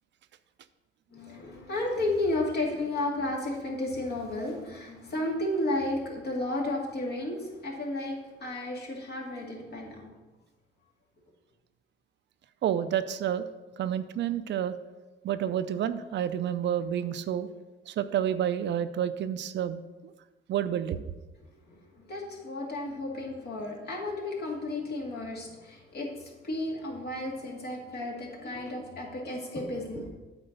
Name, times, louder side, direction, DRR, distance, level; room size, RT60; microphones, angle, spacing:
voice 1, 1.1-10.1 21.5-30.1, left 2 dB, 55° left, -1 dB, 2.2 m, -33 dB
voice 2, 12.6-13.4 13.8-14.7 15.2-17.5 17.9-20.1 20.5-21.0, right 10 dB, 65° right, 12 dB, 0.5 m, -29 dB
8.0 x 4.4 x 6.6 m, 1.1 s
cardioid pair, 90°, 20 cm